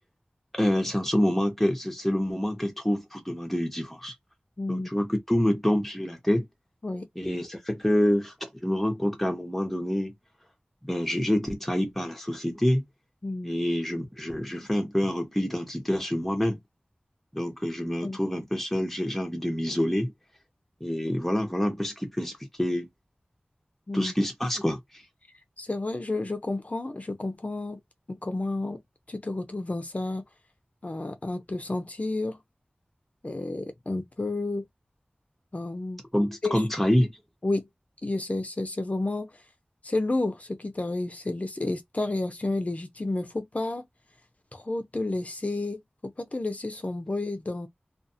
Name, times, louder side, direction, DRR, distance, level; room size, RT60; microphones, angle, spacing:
voice 1, 0.5-4.1 4.7-6.5 7.2-10.1 10.8-12.8 13.4-16.6 17.3-20.1 20.8-22.9 23.9-25.0 36.1-37.2, equal, 5° left, 0.8 m, -27 dB
voice 2, 4.6-4.9 6.8-7.1 13.2-13.6 18.0-18.2 23.9-24.1 25.6-27.8 28.1-28.8 29.1-30.2 30.8-32.4 33.2-34.7 35.5-36.0 36.4-36.6 37.4-37.7 38.0-39.3 39.8-43.9 44.5-47.7, left 2 dB, 45° left, 0.6 m, -31 dB
2.5 x 2.4 x 2.7 m
wide cardioid pair, 65°, 3 cm